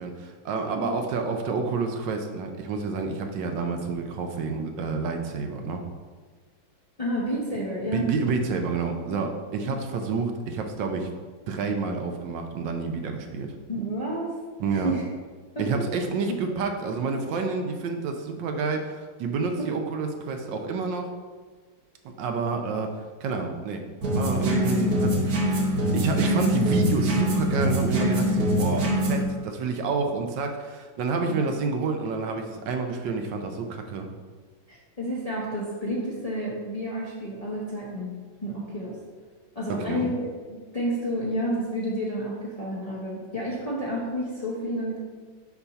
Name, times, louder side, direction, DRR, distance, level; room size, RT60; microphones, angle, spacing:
voice 1, 0.0-5.8 7.9-11.1 11.5-13.6 14.6-14.9 15.6-21.1 22.2-23.9 24.1-34.1 39.7-40.1, right 4 dB, 75° right, 4 dB, 1.3 m, -29 dB
voice 2, 7.0-8.1 8.9-9.2 9.6-9.8 13.7-14.4 14.7-15.0 15.5-15.9 16.3-16.6 19.6-19.7 31.3-31.5 34.7-38.2 38.4-39.0 39.5-45.0, equal, 30° left, -6 dB, 0.7 m, -30 dB
sound 1, 24.0-29.2, equal, 55° right, 1.4 m, -24 dB
6.9 x 2.7 x 5.6 m, 1.5 s
omnidirectional pair, 2.0 m